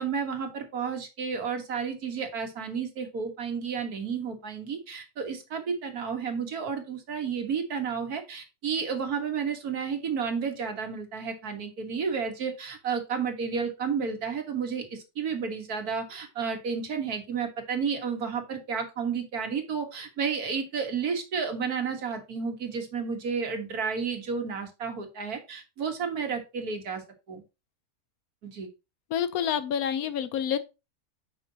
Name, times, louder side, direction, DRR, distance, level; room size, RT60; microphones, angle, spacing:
voice 1, 0.0-27.0 27.3-27.4 28.4-28.7, right 6 dB, 85° right, 2.0 m, -31 dB
voice 2, 29.1-30.6, left 8 dB, 80° left, 1.2 m, -28 dB
9.3 x 5.8 x 2.9 m
omnidirectional pair, 1.5 m